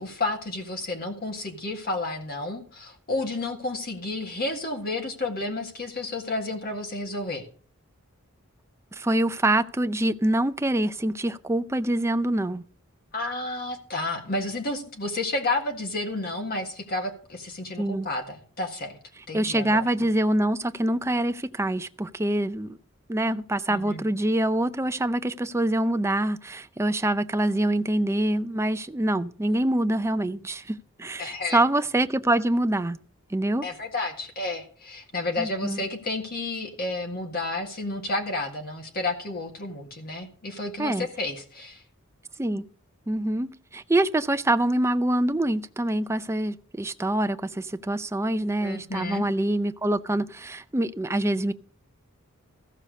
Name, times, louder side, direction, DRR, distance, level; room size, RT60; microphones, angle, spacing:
voice 1, 0.0-7.5 13.1-19.0 19.3-19.8 23.7-24.0 31.2-31.6 33.6-41.8 48.6-49.3, left 2 dB, 45° left, 1.8 m, -31 dB
voice 2, 8.9-12.6 17.8-18.1 19.3-22.8 23.1-33.0 33.3-33.6 35.4-35.8 40.8-41.1 42.4-42.7 43.1-51.5, right 1 dB, 15° right, 0.5 m, -25 dB
14.5 x 6.7 x 6.5 m
head